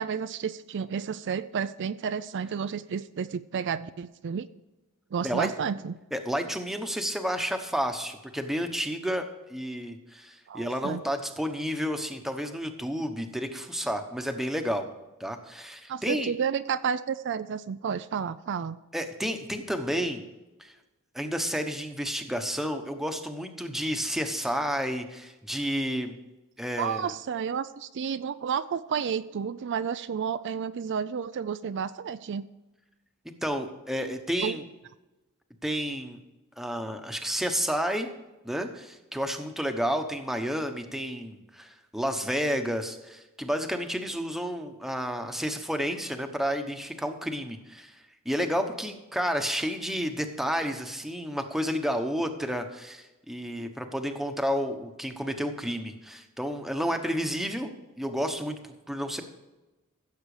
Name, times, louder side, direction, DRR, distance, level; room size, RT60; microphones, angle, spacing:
voice 1, 0.0-4.5 5.1-5.9 10.5-11.0 15.9-18.8 26.8-32.5 34.4-34.6, right 7 dB, 55° right, 12 dB, 0.4 m, -31 dB
voice 2, 6.1-14.9 15.2-16.3 18.9-20.3 20.6-20.7 21.1-26.1 26.6-27.1 33.4-34.6 35.6-36.2 36.6-38.1 38.4-48.0 48.2-58.6 58.9-59.2, equal, ahead, 5 dB, 1.1 m, -31 dB
15.5 x 7.4 x 4.9 m, 1.1 s
head